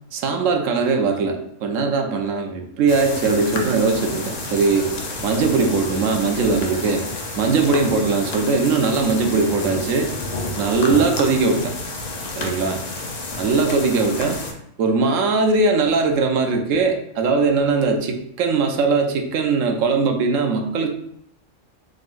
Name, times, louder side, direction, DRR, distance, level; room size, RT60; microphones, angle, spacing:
voice 1, 0.1-4.9 5.2-7.1 7.4-10.1 10.6-11.7 12.4-12.8 13.4-14.4 14.8-20.9, right 4 dB, 80° right, 4 dB, 1.0 m, -20 dB
sound 1, 2.9-14.5, left 2 dB, 45° left, 0.5 m, -30 dB
3.8 x 3.8 x 2.5 m, 0.70 s
omnidirectional pair, 1.3 m